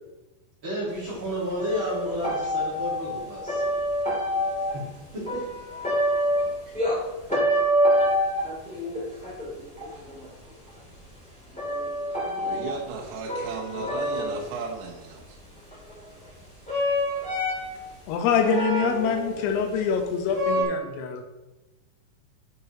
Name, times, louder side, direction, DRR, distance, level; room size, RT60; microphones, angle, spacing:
voice 1, 0.6-3.6 4.7-4.8 5.1-5.9, equal, 40° right, 1.8 m, -32 dB
sound 1, 1.2-1.3 1.6-4.9 5.3-7.0 7.3-10.8 11.5-14.6 15.7-16.3 16.7-17.8 18.3-19.4 19.8-19.9 20.3-20.6, equal, 5° left, 1.7 m, -27 dB
voice 2, 12.4-15.4, right 5 dB, 75° right, 3.0 m, -35 dB
voice 3, 18.1-21.2, left 6 dB, 75° left, 2.8 m, -25 dB
12.0 x 5.4 x 3.0 m
omnidirectional pair, 5.2 m